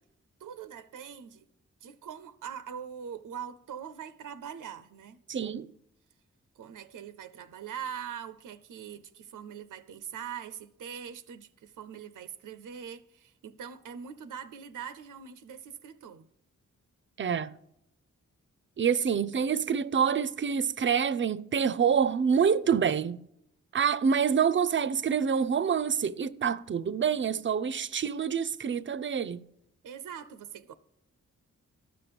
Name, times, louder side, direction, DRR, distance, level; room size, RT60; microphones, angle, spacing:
voice 1, 0.4-1.5 1.8-5.2 6.6-16.3 29.8-30.7, right 8 dB, 90° right, 0.5 m, -42 dB
voice 2, 5.3-5.7 17.2-17.5 18.8-23.2 23.7-29.5, right 7 dB, 40° right, 0.5 m, -27 dB
12.5 x 5.8 x 6.8 m
cardioid pair, 50°, 31 cm